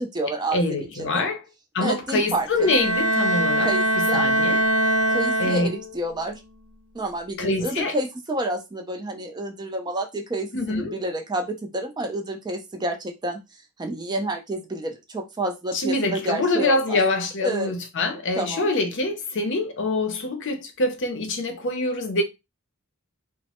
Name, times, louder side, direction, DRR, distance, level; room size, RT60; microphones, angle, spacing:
voice 1, 0.0-1.3 1.8-2.7 3.6-4.2 5.1-6.4 6.9-13.4 13.8-17.0 17.4-17.7 18.4-18.7, right 1 dB, 20° right, 0.4 m, -29 dB
voice 2, 0.5-1.4 1.7-3.7 4.0-4.6 5.4-5.7 7.4-7.9 10.5-10.9 15.7-22.2, left 2 dB, 55° left, 0.6 m, -25 dB
Bowed string instrument, 2.6-6.1, right 1 dB, 70° right, 0.6 m, -22 dB
3.0 x 2.1 x 2.9 m
head